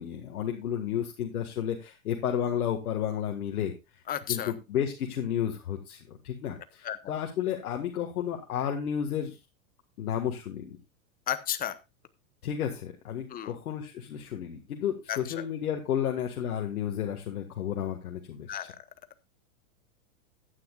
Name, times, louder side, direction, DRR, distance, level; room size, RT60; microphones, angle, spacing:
voice 1, 0.0-4.0 4.3-9.4 10.0-10.8 12.4-18.7, left 9 dB, 80° left, 2 dB, 1.8 m, -32 dB
voice 2, 4.1-4.5 6.8-7.0 11.3-11.8 13.3-13.5 15.1-15.2 18.5-18.7, left 11 dB, 20° left, 12 dB, 0.9 m, -32 dB
14.5 x 10.0 x 2.4 m, 0.25 s
hypercardioid pair, 135°, 43 cm